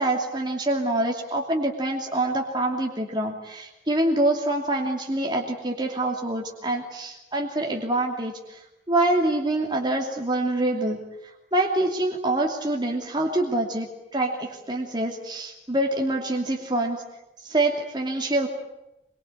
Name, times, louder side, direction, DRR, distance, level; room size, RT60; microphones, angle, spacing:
voice 1, 0.0-8.6 8.9-11.0 11.5-13.9 14.1-17.0 17.4-18.5, right 1 dB, 25° right, 1 dB, 2.7 m, -25 dB
24.5 x 23.5 x 8.6 m, 0.93 s
head